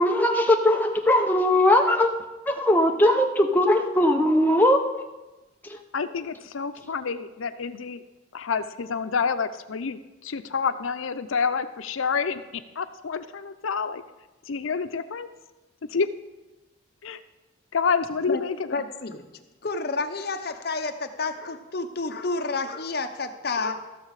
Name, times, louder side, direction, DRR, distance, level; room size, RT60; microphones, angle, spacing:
voice 1, 0.0-4.9, left 1 dB, 10° left, 3 dB, 0.7 m, -20 dB
voice 2, 5.9-8.0 8.3-14.0 14.5-15.3 15.9-16.1 17.0-17.2 17.7-18.8, left 5 dB, 90° left, 11 dB, 0.6 m, -28 dB
voice 3, 18.7-19.3 19.6-23.8, left 3 dB, 50° left, 6 dB, 0.8 m, -30 dB
14.5 x 6.5 x 4.8 m, 1.1 s
head